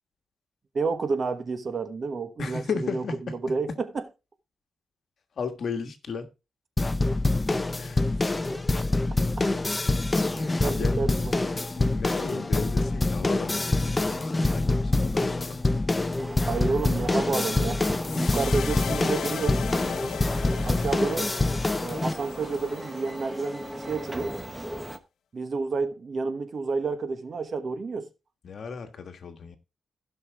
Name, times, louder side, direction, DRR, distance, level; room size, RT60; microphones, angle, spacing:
voice 1, 0.7-2.6 2.9-3.0 3.4-4.0 10.6-11.5 16.5-17.8 18.1-19.6 20.6-21.3 21.8-24.3 25.3-28.1, right 4 dB, 45° right, 1.2 m, -30 dB
voice 2, 2.4-3.4 5.4-6.3 7.8-8.4 10.7-11.0 11.7-15.6 28.4-29.6, left 5 dB, 55° left, 1.5 m, -35 dB
sound 1, 6.8-22.1, left 2 dB, 20° left, 0.6 m, -26 dB
sound 2, 16.2-25.0, right 1 dB, 10° right, 1.0 m, -38 dB
sound 3, 18.0-24.3, left 8 dB, 75° left, 0.6 m, -38 dB
15.5 x 5.8 x 3.5 m
wide cardioid pair, 135°, 0 cm